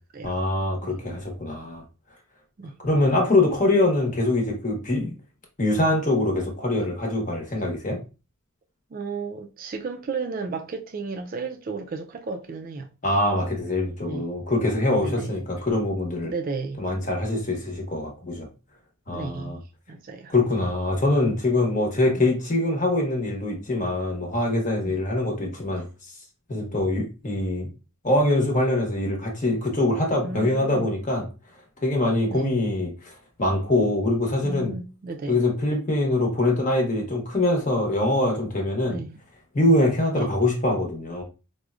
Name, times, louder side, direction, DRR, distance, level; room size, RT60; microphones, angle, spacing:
voice 1, 0.2-1.8 2.8-5.1 5.6-8.0 13.0-16.3 16.8-18.5 19.1-19.6 20.3-25.8 26.5-27.7 28.0-31.2 31.8-32.9 33.4-34.7 35.3-39.0 39.5-41.2, left 2 dB, 35° left, 0.9 m, -23 dB
voice 2, 8.9-12.9 14.1-14.2 14.9-15.3 16.2-16.8 19.1-19.6 19.9-20.3 22.2-22.3 24.8-25.0 30.2-30.9 32.3-32.5 34.4-35.4 38.9-39.1 40.1-40.3, right 4 dB, 40° right, 0.3 m, -33 dB
4.7 x 2.1 x 2.4 m
head